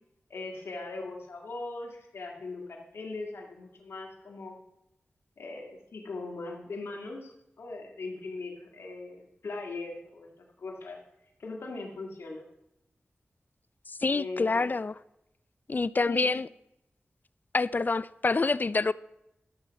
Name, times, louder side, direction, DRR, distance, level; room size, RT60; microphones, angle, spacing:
voice 1, 0.3-4.6 5.4-10.3 10.6-11.0 11.4-12.4 14.1-14.7 16.1-16.3, left 3 dB, 85° left, 1.9 m, -40 dB
voice 2, 13.9-15.0 15.7-16.5 17.5-18.9, left 3 dB, 45° left, 0.3 m, -27 dB
13.0 x 7.0 x 5.1 m
cardioid pair, 40°, 4 cm